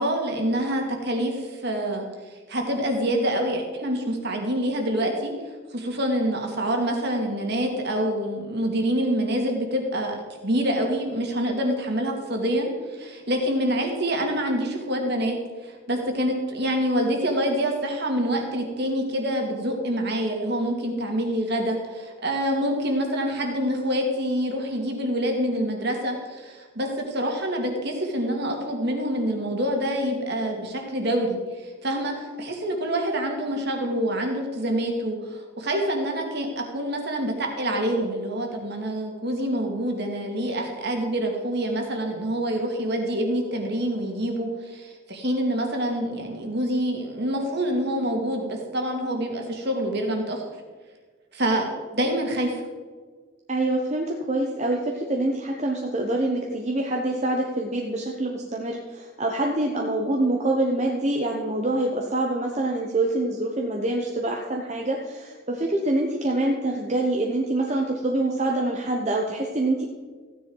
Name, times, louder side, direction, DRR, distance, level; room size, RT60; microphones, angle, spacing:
voice 1, 0.0-2.1 2.5-5.3 5.7-10.2 10.4-15.4 15.6-50.5 51.3-51.7 51.9-52.6, equal, 55° right, 2 dB, 2.2 m, -26 dB
voice 2, 53.5-69.8, right 2 dB, 35° right, 0 dB, 1.0 m, -25 dB
14.5 x 9.8 x 4.7 m, 1.5 s
head